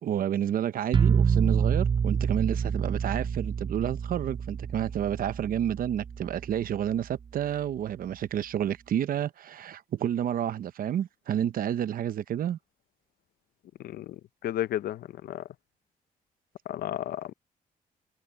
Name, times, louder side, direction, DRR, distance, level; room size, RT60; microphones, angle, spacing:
voice 1, 0.0-12.6, right 10 dB, 70° right, 0.8 m, -30 dB
sound 1, 0.9-6.7, right 7 dB, 30° right, 0.4 m, -27 dB
voice 2, 13.8-15.5 16.7-17.3, left 12 dB, 85° left, 0.6 m, -33 dB
cardioid pair, 90°, 15 cm